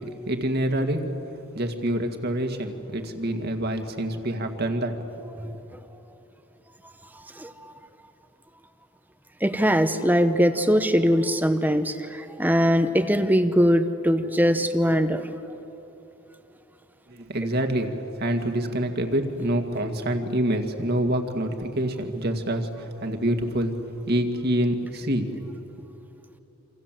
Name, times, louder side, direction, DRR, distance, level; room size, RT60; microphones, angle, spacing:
voice 1, 0.3-1.0 1.5-4.9 5.2-5.5 17.1-23.7 24.1-25.6, right 1 dB, 50° right, 5 dB, 2.2 m, -26 dB
voice 2, 9.4-15.3, equal, 10° right, 9 dB, 0.9 m, -21 dB
28.5 x 27.0 x 7.7 m, 3.0 s
head